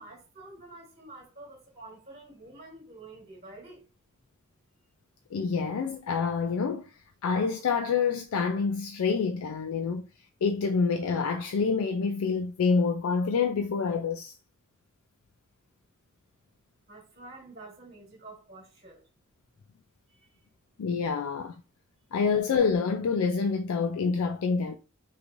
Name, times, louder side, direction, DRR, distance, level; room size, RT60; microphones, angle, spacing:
voice 1, 0.0-3.8 16.9-19.0 20.1-20.3, right 2 dB, 35° right, 1.4 m, -48 dB
voice 2, 5.3-6.9 7.2-10.1 10.4-14.3 20.8-21.6 22.1-24.8, left 5 dB, 85° left, 0.4 m, -27 dB
3.7 x 3.0 x 2.6 m
head